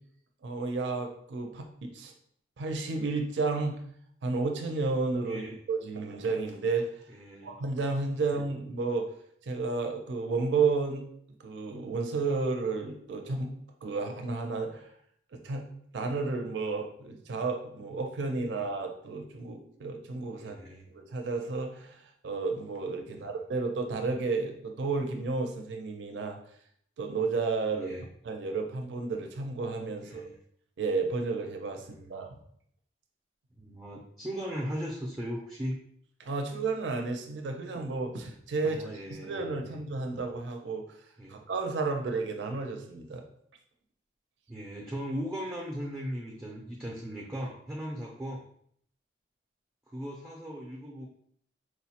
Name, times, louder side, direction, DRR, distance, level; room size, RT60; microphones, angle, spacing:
voice 1, 0.4-2.1 2.6-3.8 4.2-7.0 7.4-9.1 9.4-11.0 11.4-13.5 13.8-14.9 15.3-15.7 15.9-20.6 20.9-26.4 27.0-27.9 28.2-30.3 30.8-32.3 36.2-38.8 39.1-41.0 41.3-43.2, right 4 dB, 80° right, 3 dB, 0.4 m, -32 dB
voice 2, 5.2-5.6 7.1-7.5 8.2-8.3 20.4-20.9 23.1-23.3 27.7-28.0 30.0-30.3 31.8-32.3 33.5-35.8 38.6-39.8 41.2-41.4 44.5-48.4 49.9-51.0, equal, 10° right, -3 dB, 0.4 m, -38 dB
4.4 x 2.1 x 2.8 m, 0.66 s
head